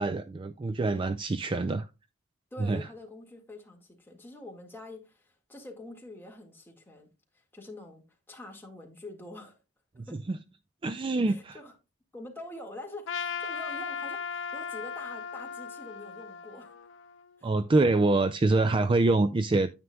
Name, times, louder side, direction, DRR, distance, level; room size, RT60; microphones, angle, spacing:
voice 1, 0.0-1.9 2.6-2.8 10.0-10.4 10.8-11.6 17.4-19.7, right 2 dB, 25° right, 0.3 m, -25 dB
voice 2, 2.5-9.6 10.1-10.2 11.3-11.7 12.1-16.7 17.4-17.9, left 1 dB, 10° left, 1.9 m, -46 dB
Trumpet, 13.1-17.4, left 6 dB, 70° left, 0.6 m, -37 dB
9.5 x 8.9 x 2.3 m
head